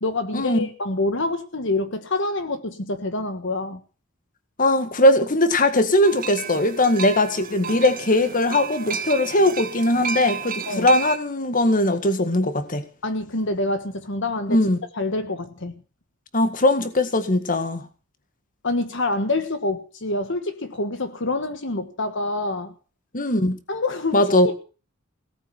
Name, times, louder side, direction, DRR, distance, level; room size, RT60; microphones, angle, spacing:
voice 1, 0.0-3.8 10.7-10.9 13.0-14.6 14.9-15.7 18.6-22.7 23.7-24.2, left 2 dB, 60° left, 1.5 m, -26 dB
voice 2, 4.6-12.8 14.5-14.8 16.3-17.8 23.1-23.6 24.1-24.5, left 1 dB, 40° left, 1.8 m, -20 dB
sound 1, 6.0-11.2, right 5 dB, 40° right, 1.7 m, -32 dB
18.0 x 8.9 x 7.8 m
head